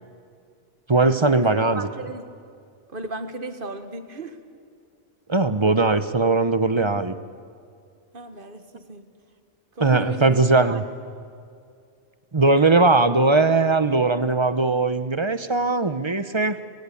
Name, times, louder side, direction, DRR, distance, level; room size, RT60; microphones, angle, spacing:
voice 1, 0.9-1.9 5.3-7.1 9.8-10.8 12.3-16.6, right 3 dB, 25° right, 12 dB, 0.8 m, -19 dB
voice 2, 1.4-2.2 2.9-4.4 8.1-9.1 9.8-10.8, right 2 dB, 45° right, 9 dB, 1.7 m, -36 dB
29.5 x 23.0 x 8.5 m, 2.3 s
omnidirectional pair, 1.3 m